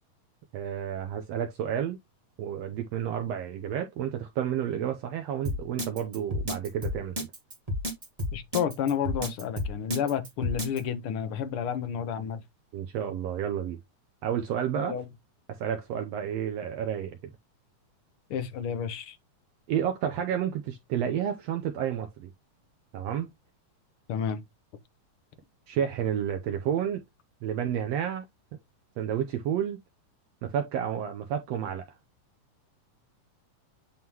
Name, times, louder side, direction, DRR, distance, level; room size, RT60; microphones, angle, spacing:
voice 1, 0.5-2.0 2.4-7.3 12.7-13.8 14.2-15.0 15.5-17.1 19.7-22.3 22.9-23.3 25.7-27.0 27.4-28.3 29.0-29.8 30.4-31.8, right 9 dB, 80° right, 1.5 m, -30 dB
Drum kit, 5.4-10.8, left 1 dB, 40° right, 0.5 m, -31 dB
voice 2, 8.3-12.4 14.7-15.1 18.3-19.2 24.1-24.4, left 8 dB, 65° left, 1.4 m, -30 dB
9.4 x 3.6 x 2.9 m
omnidirectional pair, 3.6 m